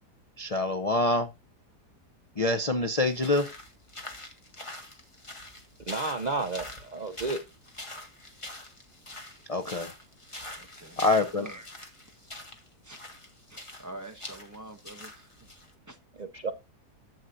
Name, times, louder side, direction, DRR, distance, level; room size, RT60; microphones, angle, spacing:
voice 1, 0.4-1.3 2.4-3.5 9.5-9.9 11.0-11.5, left 2 dB, 60° left, 0.3 m, -26 dB
sound 1, 2.9-15.7, left 1 dB, 20° left, 1.6 m, -44 dB
voice 2, 5.9-7.4 16.2-16.5, right 3 dB, 45° right, 0.6 m, -32 dB
voice 3, 10.6-11.0 11.3-11.7 12.1-12.2 12.8-13.0 13.5-15.3 15.9-16.0, right 1 dB, 10° right, 1.1 m, -45 dB
11.5 x 8.0 x 2.6 m
omnidirectional pair, 1.8 m